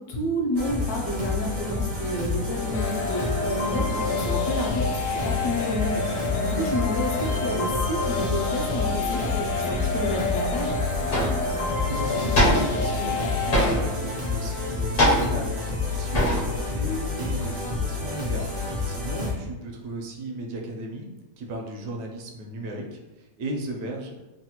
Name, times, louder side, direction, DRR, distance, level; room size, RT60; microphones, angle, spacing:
voice 1, 0.0-10.7, left 1 dB, 70° left, -1 dB, 1.0 m, -30 dB
sound 1, 0.5-19.3, left 3 dB, 55° right, 0.5 m, -29 dB
sound 2, 2.7-13.7, left 3 dB, 90° left, 1.2 m, -29 dB
sound 3, 10.4-10.5 11.1-11.5 12.3-12.9 13.5-14.0 15.0-15.6 16.1-16.6 16.9-17.8, equal, 50° left, 0.6 m, -23 dB
voice 2, 11.9-21.1 21.4-24.1, right 1 dB, 75° right, 1 dB, 1.1 m, -35 dB
3.3 x 2.1 x 2.8 m, 1.0 s
omnidirectional pair, 1.9 m